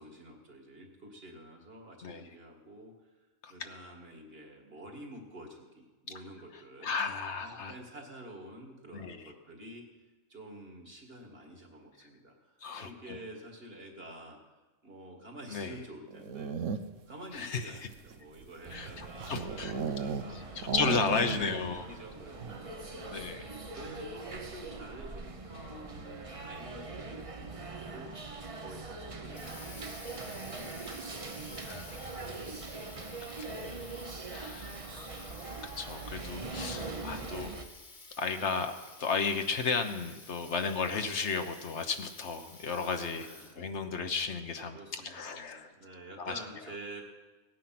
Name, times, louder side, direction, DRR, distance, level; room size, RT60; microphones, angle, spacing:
voice 1, 0.0-2.9 3.5-6.9 7.4-9.8 10.3-14.4 14.8-16.5 17.1-23.1 23.7-28.1 28.6-31.8 34.8-35.3 43.1-43.7 44.7-47.0, right 1 dB, 50° right, 1 dB, 2.4 m, -49 dB
voice 2, 6.8-7.7 8.9-9.3 12.6-13.2 15.5-15.8 17.3-17.6 18.7-19.7 20.3-21.9 23.1-23.5 31.7-32.5 33.2-33.9 34.3-35.3 35.8-37.6 38.2-38.7 39.0-43.3 43.6-45.7 46.2-46.4, left 5 dB, 65° left, 7 dB, 1.3 m, -34 dB
sound 1, 16.1-17.1 17.8-20.3 20.6-21.7 22.0-22.1 22.4-22.7, right 6 dB, 85° right, 1.2 m, -35 dB
sound 2, 18.6-37.6, right 3 dB, 30° right, 0.9 m, -42 dB
Water tap faucet, 29.0-43.7, left 3 dB, 40° left, 1.6 m, -51 dB
17.0 x 9.4 x 6.0 m, 1.3 s
omnidirectional pair, 1.3 m